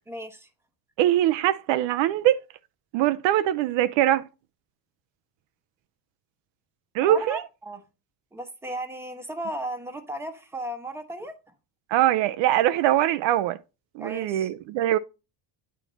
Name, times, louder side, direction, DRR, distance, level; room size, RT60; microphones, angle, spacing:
voice 1, 0.1-0.5 7.0-7.8 8.3-11.3 14.0-14.5, right 1 dB, 5° right, 1.0 m, -35 dB
voice 2, 1.0-2.4 2.9-4.2 6.9-7.4 11.9-13.6 14.0-15.0, right 13 dB, 65° right, 0.5 m, -22 dB
9.2 x 4.4 x 3.9 m
cardioid pair, 145°, 49 cm